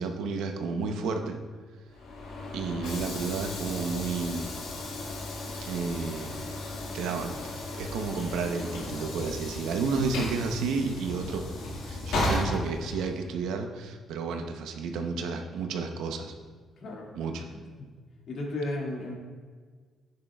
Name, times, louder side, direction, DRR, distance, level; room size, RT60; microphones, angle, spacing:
voice 1, 0.0-1.4 2.5-4.6 5.6-6.5 6.9-7.3 7.8-11.4 11.9-16.3 17.1-17.4, right 4 dB, 90° right, 4 dB, 0.9 m, -31 dB
Train / Sliding door, 1.9-13.3, left 2 dB, 90° left, 1.8 m, -35 dB
voice 2, 10.0-10.4 16.8-17.9 18.3-19.1, left 2 dB, 65° left, -2 dB, 2.3 m, -36 dB
11.0 x 9.6 x 2.4 m, 1.5 s
cardioid pair, 90°, 0 cm